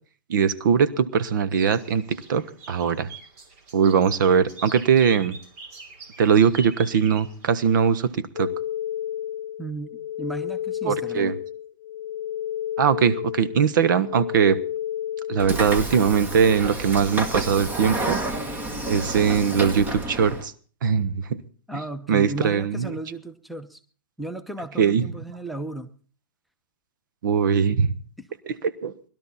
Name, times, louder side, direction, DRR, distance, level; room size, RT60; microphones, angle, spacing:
voice 1, 0.3-3.1 3.7-5.4 6.2-8.5 10.8-11.3 12.8-14.6 15.3-18.2 18.9-20.5 20.8-21.1 22.1-22.9 24.8-25.0 27.2-27.9 28.5-28.9, right 7 dB, 70° right, 17 dB, 1.1 m, -21 dB
sound 1, 1.5-8.2, right 3 dB, 45° right, 3.1 m, -45 dB
sound 2, 8.4-15.7, left 11 dB, 70° left, 0.7 m, -31 dB
voice 2, 9.6-11.3 21.7-23.8 24.2-25.9 28.2-28.3, right 2 dB, ahead, 12 dB, 0.8 m, -35 dB
Train / Sliding door, 15.4-20.5, right 1 dB, 15° right, 1.3 m, -30 dB
20.0 x 12.5 x 4.2 m, 0.40 s
hypercardioid pair, 145°, 11 cm